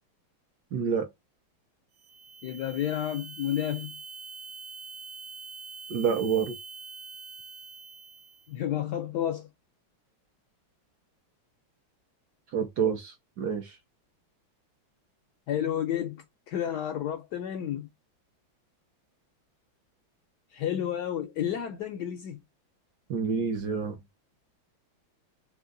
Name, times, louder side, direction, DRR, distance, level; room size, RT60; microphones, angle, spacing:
voice 1, 0.7-1.1 5.9-6.6 12.5-13.8 23.1-24.0, right 6 dB, 65° right, 1.1 m, -28 dB
sound 1, 1.9-8.5, right 4 dB, 85° right, 1.7 m, -44 dB
voice 2, 2.4-4.0 8.5-9.5 15.5-17.9 20.5-22.4, left 10 dB, 75° left, 1.0 m, -31 dB
3.7 x 3.1 x 3.7 m
omnidirectional pair, 2.2 m